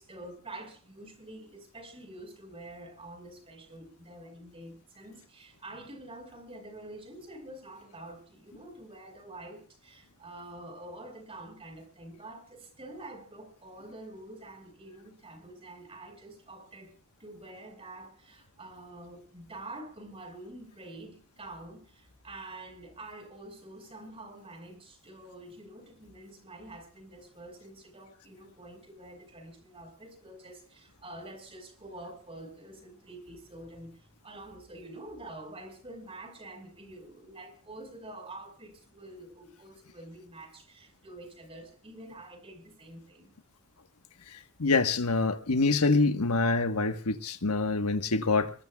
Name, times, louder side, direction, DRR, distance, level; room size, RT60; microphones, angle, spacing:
voice 1, 0.0-16.9 17.2-43.3, right 1 dB, 25° right, 5.2 m, -47 dB
voice 2, 44.6-48.5, left 3 dB, 90° left, 1.4 m, -25 dB
25.0 x 22.5 x 2.4 m
head